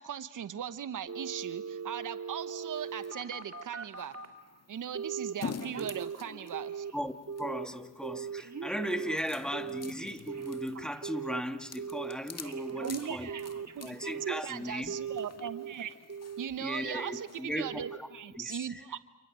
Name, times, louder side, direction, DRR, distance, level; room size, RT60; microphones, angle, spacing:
voice 1, 0.0-4.1 4.7-6.9 12.8-13.5 13.7-16.0 16.4-19.0, right 9 dB, 75° right, 12 dB, 1.1 m, -39 dB
Telephone, 1.1-4.4 5.0-5.3 5.6-7.0 7.3-7.7 8.0-11.4 11.8-12.2 12.4-14.5 14.9-15.7 16.1-16.5 16.8-17.2 17.6-18.0 18.3-18.4, right 6 dB, 60° right, 2.5 m, -39 dB
sound 1, 2.8-17.4, left 5 dB, 50° left, 2.0 m, -48 dB
voice 2, 7.4-13.3 13.8-14.9 16.6-18.1 18.4-18.8, equal, ahead, 6 dB, 2.4 m, -37 dB
30.0 x 29.0 x 6.4 m, 0.98 s
supercardioid pair, 45°, 32 cm